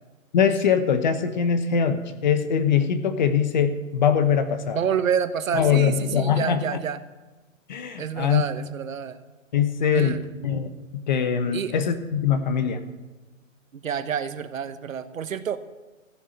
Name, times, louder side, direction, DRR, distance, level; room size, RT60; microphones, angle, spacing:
voice 1, 0.3-4.8 5.5-6.6 7.7-8.4 9.5-12.8, left 7 dB, 35° left, 10 dB, 1.0 m, -22 dB
voice 2, 4.7-7.0 8.0-9.2 9.9-10.2 11.5-11.8 13.7-15.6, right 8 dB, 75° right, 11 dB, 1.2 m, -28 dB
15.5 x 7.2 x 8.6 m, 1.2 s
hypercardioid pair, 165°, 40 cm